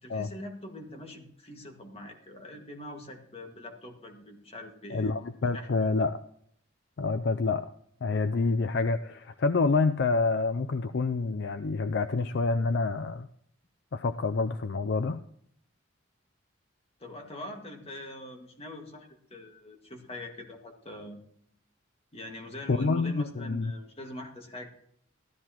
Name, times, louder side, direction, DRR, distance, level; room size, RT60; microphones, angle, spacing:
voice 1, 0.0-5.1 5.5-5.9 17.0-21.2 22.1-24.7, left 1 dB, 30° left, 3 dB, 1.9 m, -43 dB
voice 2, 4.9-6.2 7.0-7.7 8.0-13.3 13.9-15.2 22.7-23.7, left 3 dB, 60° left, 10 dB, 0.5 m, -27 dB
14.0 x 13.0 x 3.0 m, 0.64 s
head